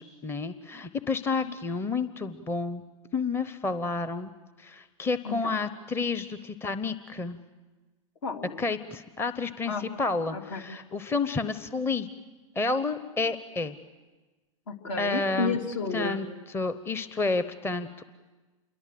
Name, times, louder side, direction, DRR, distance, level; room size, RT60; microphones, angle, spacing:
voice 1, 0.0-2.8 3.1-4.3 4.6-7.4 8.6-12.1 12.6-13.8 15.0-15.6 15.9-16.2 16.5-18.0, left 3 dB, 15° left, 12 dB, 0.9 m, -30 dB
voice 2, 5.2-5.6 8.2-8.7 9.7-9.8 10.3-10.6 14.7-16.2, left 4 dB, 65° left, 4 dB, 3.2 m, -32 dB
28.0 x 23.0 x 7.7 m, 1.3 s
hypercardioid pair, 110°, 17 cm